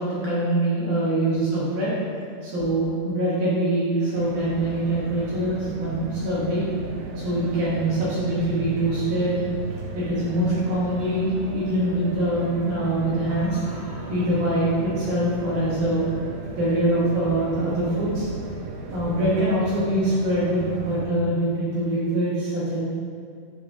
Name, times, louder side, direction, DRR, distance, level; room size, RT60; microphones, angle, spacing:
voice 1, 0.0-2.0 2.4-6.6 7.2-9.4 9.9-16.1 16.6-18.3 18.9-22.8, right 1 dB, 65° right, -9 dB, 2.6 m, -24 dB
sound 1, 4.2-21.1, right 3 dB, 80° right, 2.7 m, -35 dB
9.7 x 3.3 x 3.9 m, 2.4 s
omnidirectional pair, 5.3 m